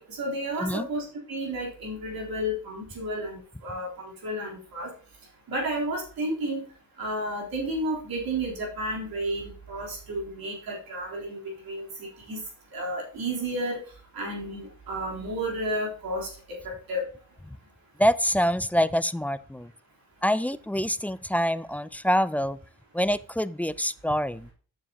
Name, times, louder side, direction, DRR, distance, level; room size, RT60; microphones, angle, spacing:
voice 1, 0.0-4.9 5.5-6.6 7.0-11.4 11.7-12.4 12.7-13.8 14.1-16.3 16.6-17.0, right 1 dB, 80° right, -2 dB, 3.6 m, -32 dB
voice 2, 18.0-19.7 20.2-22.6 22.9-24.5, equal, 5° left, 15 dB, 0.3 m, -26 dB
9.5 x 6.8 x 2.9 m, 0.39 s
cardioid pair, 70°, 36 cm